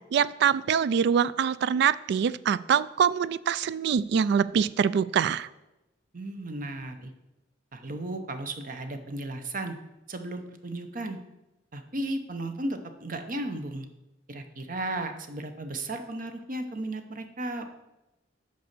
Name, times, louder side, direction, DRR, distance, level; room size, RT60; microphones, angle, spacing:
voice 1, 0.1-5.5, right 7 dB, 60° right, 18 dB, 0.3 m, -24 dB
voice 2, 6.1-7.1 7.7-9.7 10.1-11.2 11.7-13.9 14.3-17.7, right 2 dB, 45° right, 7 dB, 0.8 m, -35 dB
6.8 x 5.4 x 6.7 m, 0.96 s
head